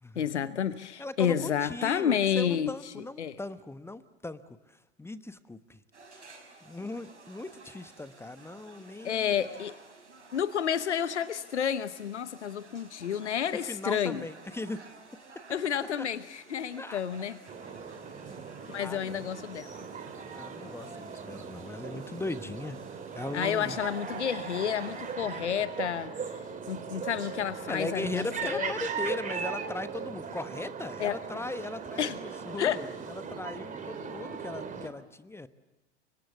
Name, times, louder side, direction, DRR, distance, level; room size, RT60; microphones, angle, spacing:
voice 1, 0.2-2.9 3.2-3.4 9.0-9.7 10.3-14.2 15.5-17.4 18.7-19.7 23.3-26.4 26.7-28.7 31.0-31.2 32.0-32.2 32.6-32.8, left 8 dB, 80° left, 14 dB, 0.9 m, -30 dB
voice 2, 1.0-4.4 4.7-5.8 6.6-9.4 13.7-14.9 16.8-17.0 18.1-18.4 18.8-19.3 20.3-22.8 23.1-23.8 27.7-35.5, left 2 dB, 5° left, 13 dB, 1.0 m, -38 dB
sound 1, 5.9-25.1, right 3 dB, 85° right, 6.1 m, -53 dB
sound 2, 17.5-34.9, right 6 dB, 20° right, 2.7 m, -39 dB
29.5 x 25.0 x 7.2 m, 1.1 s
figure-of-eight pair, 85°, 34 cm